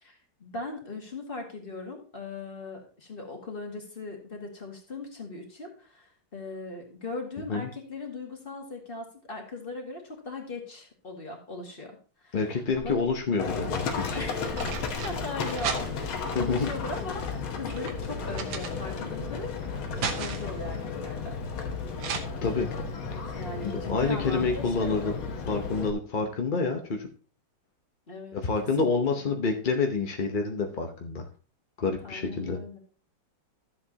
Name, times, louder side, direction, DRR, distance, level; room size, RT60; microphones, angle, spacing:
voice 1, 0.0-11.9 12.2-13.0 14.1-19.5 20.0-21.4 22.4-22.8 23.3-25.0 28.1-28.4 28.8-29.4 32.0-32.8, left 3 dB, 30° left, 2 dB, 2.0 m, -39 dB
voice 2, 12.3-14.2 16.3-16.7 22.4-22.7 23.6-25.1 25.5-27.1 28.3-31.3 31.8-32.6, left 4 dB, 45° left, 3 dB, 0.6 m, -28 dB
sound 1, 12.5-13.3 14.2-16.3 17.0-19.2 19.6-20.6 22.0-22.2, right 6 dB, 75° right, 1.8 m, -36 dB
Livestock farm animals working animals, 13.4-25.9, left 5 dB, 80° left, 2.0 m, -34 dB
13.0 x 7.6 x 2.8 m, 0.39 s
omnidirectional pair, 2.2 m